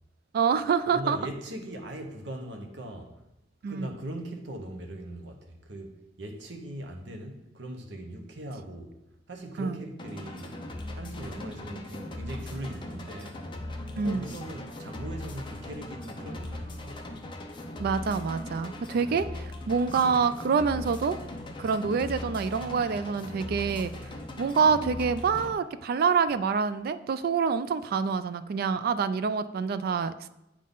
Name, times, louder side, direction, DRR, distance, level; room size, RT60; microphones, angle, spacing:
voice 1, 0.3-1.2 3.6-3.9 9.6-9.8 13.9-14.3 17.8-21.2 21.6-23.9 24.4-30.3, right 5 dB, 55° right, 0.3 m, -26 dB
voice 2, 0.9-3.2 3.7-8.9 9.3-10.6 10.9-13.4 14.0-17.2, right 1 dB, 70° right, 0.9 m, -40 dB
sound 1, 10.0-25.5, left 1 dB, 25° left, 0.6 m, -39 dB
8.5 x 3.7 x 3.9 m
head